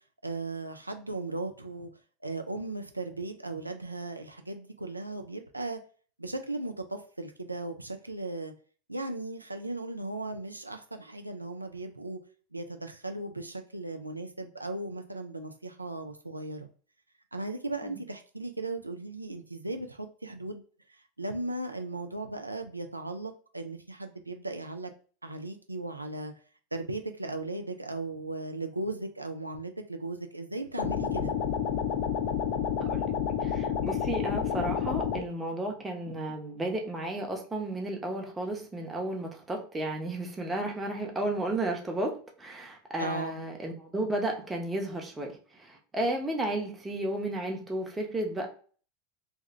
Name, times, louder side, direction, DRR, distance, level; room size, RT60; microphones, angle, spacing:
voice 1, 0.2-1.9 2.2-5.8 6.2-8.5 8.9-12.2 12.5-16.7 17.3-20.6 21.2-24.9 25.2-26.3 26.7-31.3 43.0-43.4, right 2 dB, 85° right, 6 dB, 0.3 m, -37 dB
sound 1, 30.8-35.2, left 8 dB, 45° left, 0.5 m, -29 dB
voice 2, 32.8-33.1 33.4-45.3 45.6-48.5, right 1 dB, 15° right, 1 dB, 0.8 m, -33 dB
2.6 x 2.3 x 3.2 m, 0.42 s
figure-of-eight pair, 85°, 0 cm